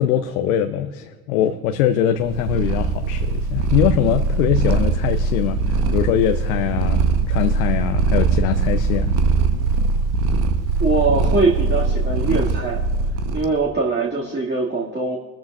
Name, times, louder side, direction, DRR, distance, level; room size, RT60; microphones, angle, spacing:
voice 1, 0.0-9.1, left 10 dB, 75° left, 8 dB, 0.7 m, -22 dB
Purr, 2.2-13.5, right 4 dB, 65° right, 1.2 m, -21 dB
voice 2, 10.8-12.8 13.3-15.2, right 3 dB, 25° right, -4 dB, 2.2 m, -22 dB
23.0 x 13.5 x 2.4 m, 1.3 s
hypercardioid pair, 60°, 43 cm